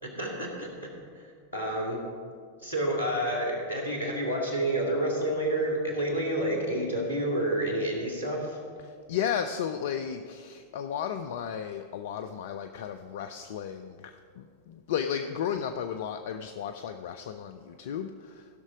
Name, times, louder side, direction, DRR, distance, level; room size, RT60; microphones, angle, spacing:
voice 1, 0.0-2.0 2.6-8.6, right 1 dB, 80° left, -1 dB, 2.4 m, -29 dB
voice 2, 8.8-18.5, left 8 dB, 55° left, 7 dB, 0.4 m, -34 dB
15.5 x 6.3 x 4.9 m, 2.1 s
figure-of-eight pair, 90°, 0 cm